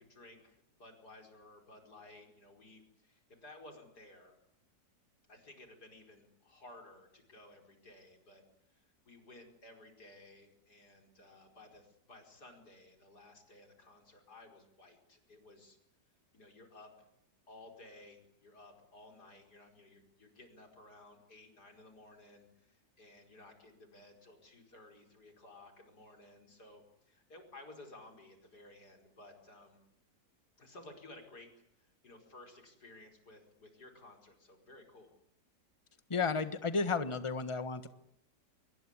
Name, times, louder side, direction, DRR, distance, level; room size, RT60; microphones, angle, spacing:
voice 1, 0.0-4.4 5.3-15.8 16.3-17.1 17.5-29.8 30.6-35.1, left 2 dB, 60° left, 4 dB, 5.5 m, -56 dB
voice 2, 36.1-37.9, left 4 dB, 20° left, 11 dB, 1.4 m, -33 dB
25.0 x 22.5 x 9.8 m, 0.76 s
omnidirectional pair, 1.9 m